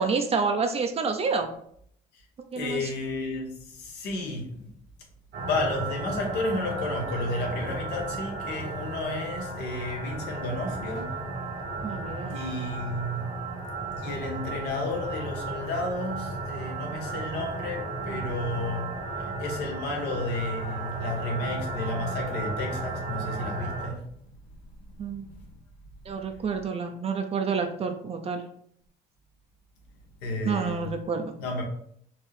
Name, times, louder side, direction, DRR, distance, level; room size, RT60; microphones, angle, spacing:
voice 1, 0.0-1.5 2.5-2.9 11.8-12.4 25.0-25.3 26.1-28.4 30.4-31.3, right 5 dB, 35° right, 5 dB, 0.5 m, -28 dB
voice 2, 2.5-4.7 5.4-11.1 12.3-13.3 14.0-18.9 19.2-24.0 30.2-30.9 31.4-31.6, left 2 dB, 85° left, 1 dB, 1.2 m, -32 dB
sound 1, 5.3-23.9, right 3 dB, 85° right, 1.2 m, -34 dB
4.4 x 2.9 x 3.3 m, 0.67 s
cardioid pair, 110°, 17 cm